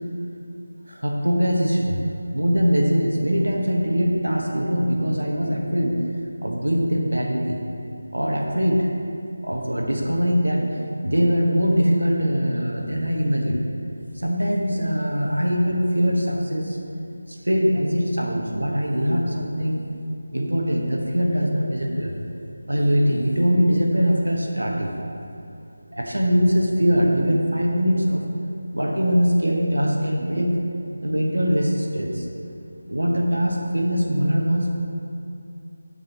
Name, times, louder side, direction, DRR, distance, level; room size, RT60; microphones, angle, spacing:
voice 1, 0.9-2.0 2.3-6.0 6.4-7.6 8.1-8.9 9.4-10.7 11.0-13.6 14.2-16.8 17.4-19.9 20.3-22.1 22.7-24.9 25.9-28.3 28.7-30.6 31.0-32.3 32.9-34.7, equal, 75° right, 0 dB, 1.1 m, -22 dB
7.3 x 6.7 x 4.2 m, 2.7 s
figure-of-eight pair, 160°, 0 cm